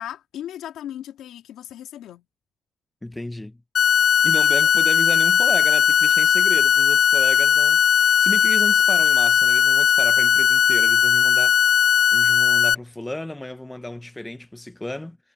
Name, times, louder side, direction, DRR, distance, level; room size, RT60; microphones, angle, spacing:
voice 1, 0.0-2.2, left 11 dB, 80° left, 2.4 m, -36 dB
voice 2, 3.0-3.6 4.2-11.7 12.1-15.2, left 1 dB, 10° left, 1.1 m, -33 dB
sound 1, 3.7-12.7, left 8 dB, 50° left, 0.3 m, -17 dB
cardioid pair, 160°, 0 cm